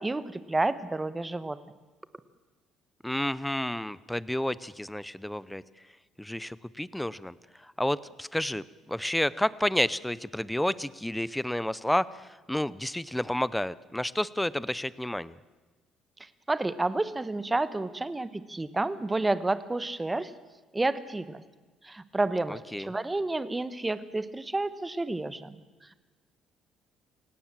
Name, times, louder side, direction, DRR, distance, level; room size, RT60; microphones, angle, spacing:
voice 1, 0.0-1.6 16.2-20.3 20.7-21.4 21.8-25.6, right 2 dB, 15° right, 14 dB, 1.1 m, -30 dB
voice 2, 3.0-5.6 6.2-15.4 22.5-22.9, left 1 dB, 5° left, 18 dB, 0.6 m, -30 dB
27.5 x 17.5 x 7.5 m, 1.3 s
cardioid pair, 130°, 0 cm